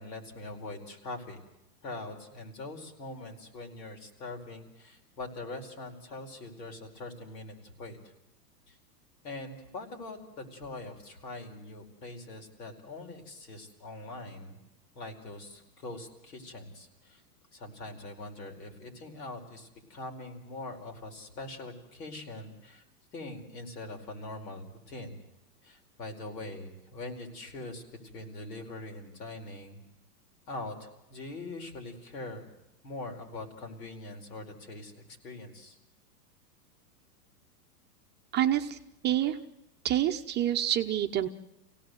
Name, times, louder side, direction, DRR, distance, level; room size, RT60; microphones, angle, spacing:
voice 1, 0.0-1.4 1.8-8.0 8.7-8.8 9.2-14.6 14.9-17.2 17.5-22.8 23.1-25.2 25.6-29.8 30.5-32.5 32.8-35.8, left 2 dB, 80° left, 3 dB, 4.9 m, -43 dB
voice 2, 38.3-38.8 39.0-39.4 39.8-41.3, right 11 dB, 20° right, 5 dB, 0.8 m, -27 dB
25.5 x 17.5 x 7.9 m, 0.91 s
hypercardioid pair, 140°, 48 cm